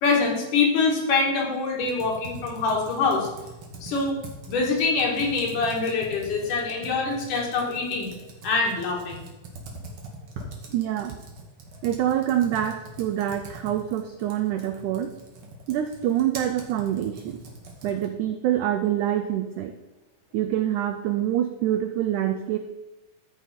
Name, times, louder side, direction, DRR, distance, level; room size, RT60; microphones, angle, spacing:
voice 1, 0.0-3.3 3.8-4.2 4.5-8.1 8.4-9.3, left 4 dB, 65° left, -2 dB, 3.1 m, -24 dB
Computer keyboard, 1.8-18.2, right 2 dB, 55° right, 1.7 m, -43 dB
voice 2, 10.7-11.1 11.8-15.1 15.7-17.4 17.8-19.7 20.3-22.6, right 11 dB, 85° right, 7 dB, 1.7 m, -26 dB
14.5 x 4.8 x 4.3 m, 1.1 s
omnidirectional pair, 4.1 m